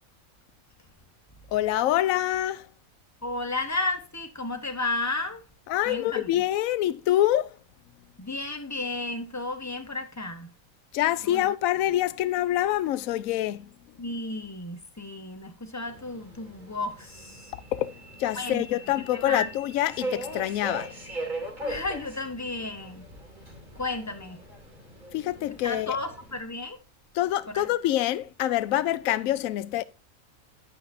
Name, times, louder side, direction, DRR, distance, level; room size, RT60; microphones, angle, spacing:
voice 1, 1.5-2.7 5.7-7.6 10.9-13.7 17.7-21.0 25.1-26.0 27.1-29.8, left 13 dB, 75° left, 1.0 m, -26 dB
voice 2, 3.2-5.4 5.9-6.3 8.2-10.5 11.2-11.5 14.0-17.5 18.3-18.7 19.1-19.5 21.6-23.0 23.8-24.4 25.6-26.8 27.5-27.7, left 2 dB, 15° left, 1.0 m, -33 dB
Subway metro underground, 15.9-26.4, right 1 dB, 35° right, 2.9 m, -40 dB
9.8 x 8.4 x 2.6 m
omnidirectional pair, 1.5 m